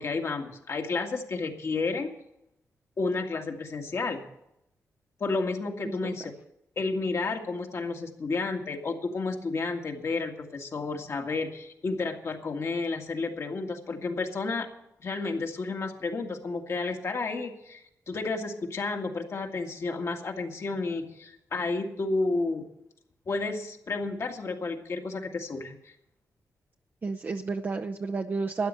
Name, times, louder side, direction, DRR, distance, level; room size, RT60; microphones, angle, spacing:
voice 1, 0.0-2.1 3.0-4.2 5.2-6.3 6.8-14.7 15.0-22.7 23.3-25.9, left 3 dB, 55° left, 3 dB, 2.0 m, -31 dB
voice 2, 27.0-28.7, right 4 dB, 35° right, 3 dB, 0.7 m, -31 dB
12.5 x 9.6 x 7.7 m, 0.82 s
cardioid pair, 100°, 6 cm